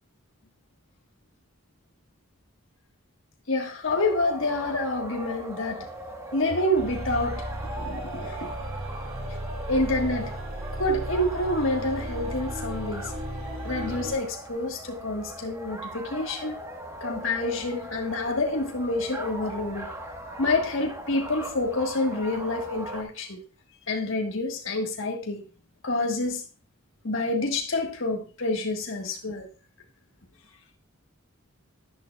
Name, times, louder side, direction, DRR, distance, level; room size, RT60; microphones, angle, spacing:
voice 1, 3.5-5.9 6.3-7.4 7.7-8.5 9.3-9.4 9.7-10.3 10.7-13.1 13.6-16.6 17.0-19.9 20.4-23.4 23.9-25.4 25.8-26.4 27.0-29.5, left 2 dB, 65° left, 1.4 m, -28 dB
sound 1, 3.8-23.0, right 1 dB, 15° right, 1.2 m, -39 dB
sound 2, 6.8-14.2, right 1 dB, 85° right, 2.9 m, -35 dB
11.5 x 10.5 x 2.3 m
head